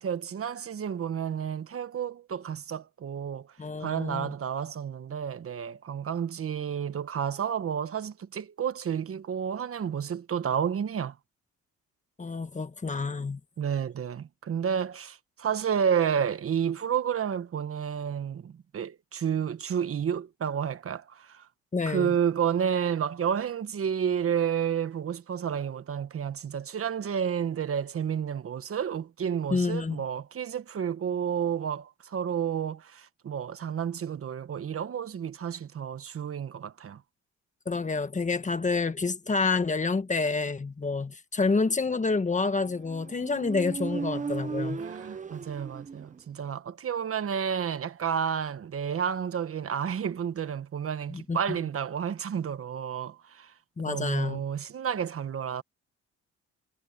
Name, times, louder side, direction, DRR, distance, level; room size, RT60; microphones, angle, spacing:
voice 1, 0.0-3.5 3.8-11.2 13.6-21.5 21.9-37.0 44.8-53.5 53.9-55.6, right 8 dB, 50° right, 1.3 m, -31 dB
voice 2, 3.6-4.3 12.2-13.4 21.7-22.1 29.5-30.0 37.6-44.8 51.1-51.4 53.8-54.4, left 4 dB, 25° left, 1.6 m, -28 dB
Motorcycle, 42.7-46.3, right 5 dB, 25° right, 0.8 m, -36 dB
cardioid pair, 90°, 30 cm